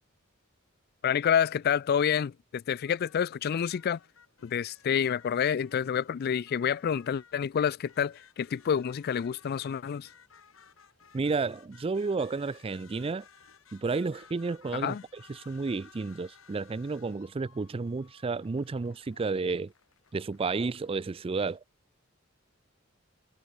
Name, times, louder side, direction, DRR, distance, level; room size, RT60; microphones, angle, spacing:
voice 1, 1.0-4.0 4.4-10.1 14.7-15.0, left 8 dB, 50° left, 0.3 m, -28 dB
sound 1, 2.8-21.6, left 6 dB, 80° left, 2.3 m, -59 dB
voice 2, 11.1-13.2 13.7-19.7 20.1-21.6, right 4 dB, 25° right, 0.4 m, -31 dB
head